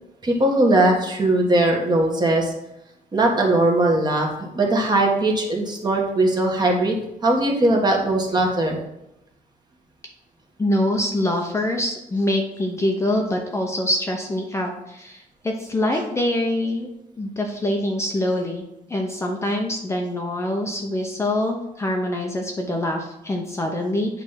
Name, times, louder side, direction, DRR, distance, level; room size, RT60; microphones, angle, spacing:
voice 1, 0.2-2.5 3.1-4.3 4.5-7.0 7.2-8.8, right 2 dB, 25° right, 0 dB, 1.5 m, -19 dB
voice 2, 10.6-16.9 17.2-18.6 18.9-24.2, left 1 dB, 15° left, 1 dB, 0.7 m, -24 dB
8.6 x 3.4 x 5.7 m, 0.84 s
cardioid pair, 150°, 16 cm